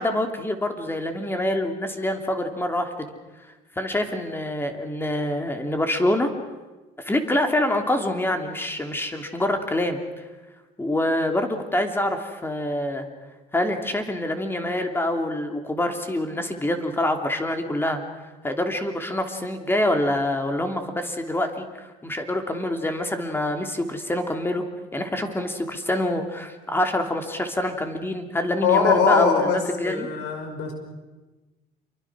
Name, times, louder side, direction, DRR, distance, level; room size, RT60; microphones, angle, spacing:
voice 1, 0.0-3.1 3.8-6.3 7.0-10.0 10.8-13.1 13.5-18.0 18.4-24.6 24.9-30.1, left 1 dB, 15° left, 5 dB, 3.1 m, -26 dB
voice 2, 28.6-29.6 29.8-30.7, left 5 dB, 90° left, 5 dB, 5.4 m, -21 dB
28.0 x 24.0 x 6.3 m, 1.2 s
cardioid pair, 110°, 17 cm